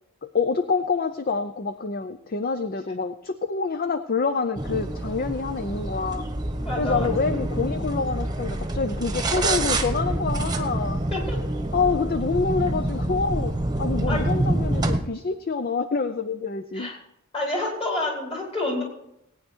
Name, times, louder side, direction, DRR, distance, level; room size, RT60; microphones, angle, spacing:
voice 1, 0.2-6.3 6.8-11.0 11.7-16.9, left 4 dB, 45° left, 11 dB, 0.5 m, -27 dB
sound 1, 4.6-15.0, right 1 dB, 20° right, 1.2 m, -27 dB
voice 2, 6.6-7.1 11.1-11.4 14.1-14.2 16.7-16.9 17.3-18.8, left 2 dB, 30° left, -2 dB, 4.8 m, -28 dB
18.5 x 9.4 x 4.5 m, 0.79 s
head